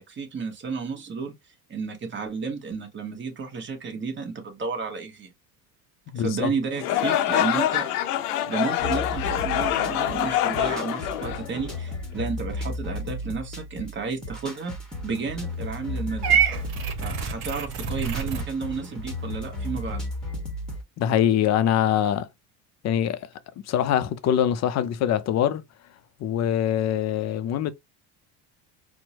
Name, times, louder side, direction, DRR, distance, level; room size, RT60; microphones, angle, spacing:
voice 1, 0.0-1.3 1.7-5.3 6.1-7.9 8.2-14.7 15.0-16.4 17.0-20.0, right 4 dB, 25° right, 1.1 m, -32 dB
voice 2, 6.1-6.5 21.0-22.3 22.8-23.3 23.7-25.6 26.2-27.7, left 10 dB, 40° left, 0.5 m, -23 dB
sound 1, 6.8-12.0, left 12 dB, 80° left, 0.7 m, -25 dB
sound 2, 8.8-20.8, left 1 dB, ahead, 1.1 m, -34 dB
Purr / Meow, 16.2-18.5, right 7 dB, 75° right, 0.9 m, -26 dB
4.3 x 2.1 x 2.7 m
hypercardioid pair, 85°, 45 cm